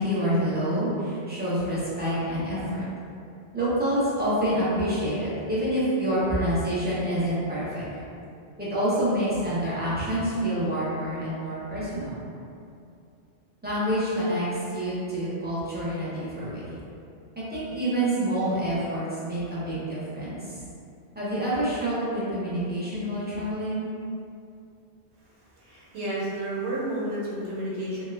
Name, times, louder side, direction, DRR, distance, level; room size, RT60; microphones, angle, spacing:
voice 1, 0.0-2.8 3.5-7.8 8.6-12.3 13.6-16.6 17.4-20.4 21.1-23.8, right 1 dB, 15° right, -10 dB, 0.4 m, -27 dB
voice 2, 25.6-28.0, right 1 dB, 75° right, -7 dB, 1.0 m, -31 dB
2.3 x 2.1 x 3.2 m, 2.5 s
omnidirectional pair, 1.2 m